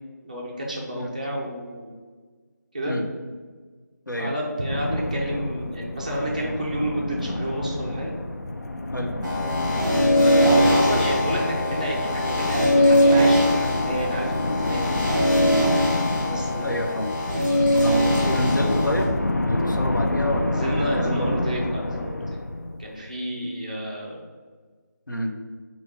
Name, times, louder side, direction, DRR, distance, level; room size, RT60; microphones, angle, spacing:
voice 1, 0.2-1.9 2.7-3.0 4.1-8.1 10.2-15.0 16.2-17.0 20.4-22.4 22.8-24.2, equal, 25° right, -2 dB, 0.5 m, -30 dB
sound 1, 4.7-23.1, left 2 dB, 60° left, 0.4 m, -28 dB
sound 2, 9.2-19.0, equal, 5° left, 0.8 m, -21 dB
voice 2, 16.6-17.1 17.8-19.1 19.4-21.4 25.1-25.3, left 1 dB, 85° left, 2 dB, 0.7 m, -28 dB
3.7 x 2.8 x 4.1 m, 1.5 s
figure-of-eight pair, 165°, 10 cm